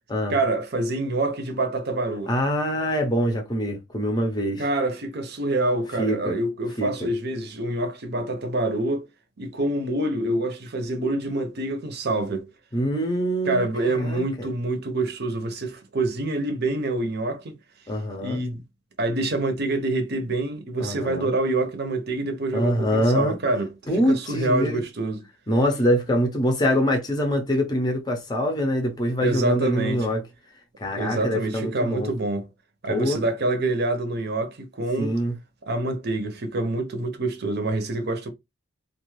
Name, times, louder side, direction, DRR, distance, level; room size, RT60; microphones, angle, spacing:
voice 1, 0.3-2.3 4.6-9.1 9.4-12.5 13.4-17.5 18.2-18.6 19.0-23.7 24.1-25.2 29.2-30.1 30.9-32.5 32.8-35.1 35.7-38.3, right 2 dB, 50° right, 0.7 m, -26 dB
voice 2, 2.3-4.6 6.0-6.4 6.8-6.9 12.7-14.5 17.9-18.4 20.8-21.3 22.5-23.4 23.9-24.8 25.5-30.3 30.8-32.1 32.9-33.2 35.0-35.4, equal, 20° left, 0.6 m, -24 dB
2.5 x 2.3 x 3.1 m
head